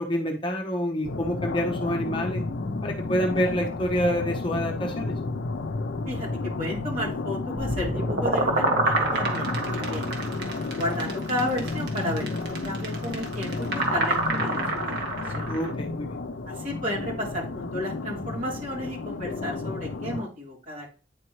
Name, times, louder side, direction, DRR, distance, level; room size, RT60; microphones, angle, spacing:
voice 1, 0.0-2.4 2.8-5.2 15.5-16.2, equal, 25° left, 2 dB, 0.9 m, -27 dB
sound 1, 1.0-20.2, left 3 dB, 70° left, 0.5 m, -32 dB
voice 2, 6.6-10.1 10.8-15.0 15.3-15.6 16.5-20.9, equal, 45° right, -5 dB, 3.6 m, -33 dB
sound 2, 7.6-15.7, right 2 dB, 60° right, 1.6 m, -27 dB
9.8 x 4.4 x 3.1 m, 0.35 s
head